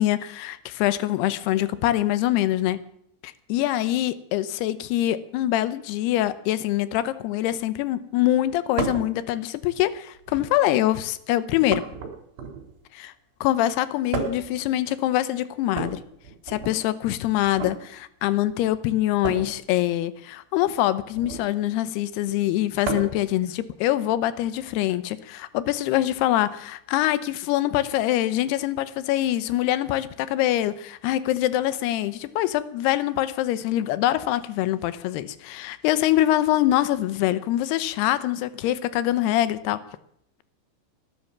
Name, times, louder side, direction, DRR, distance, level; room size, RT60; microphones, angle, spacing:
voice 1, 0.0-2.8 3.2-11.8 12.9-13.1 13.4-16.0 16.5-39.8, left 14 dB, 80° left, 14 dB, 2.4 m, -24 dB
sound 1, 8.8-9.1 10.2-10.7 11.7-12.8 14.1-14.6 15.7-16.8 17.4-17.8 19.2-19.5 21.1-21.5 22.8-23.3 24.7-24.8 26.0-26.1, right 5 dB, 65° right, 5.4 m, -32 dB
18.0 x 10.5 x 7.3 m, 0.70 s
omnidirectional pair, 5.5 m